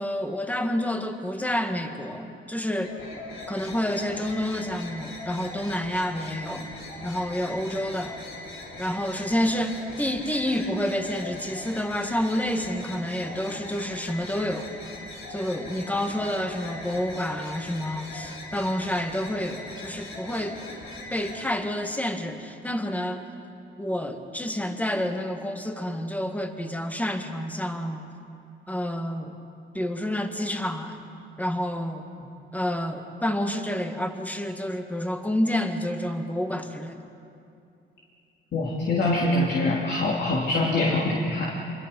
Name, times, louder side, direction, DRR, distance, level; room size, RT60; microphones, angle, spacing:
voice 1, 0.0-2.9 3.5-6.7 7.0-8.2 8.8-14.7 15.3-20.6 21.1-23.3 23.8-28.0 28.7-29.3 29.7-31.0 31.4-32.1 32.5-37.0, left 1 dB, 5° left, 5 dB, 1.9 m, -29 dB
sound 1, 2.7-21.4, left 2 dB, 85° left, 4.9 m, -40 dB
voice 2, 38.5-41.4, left 2 dB, 60° left, -3 dB, 3.2 m, -24 dB
26.5 x 23.0 x 5.5 m, 2.6 s
cardioid pair, 90°, 20 cm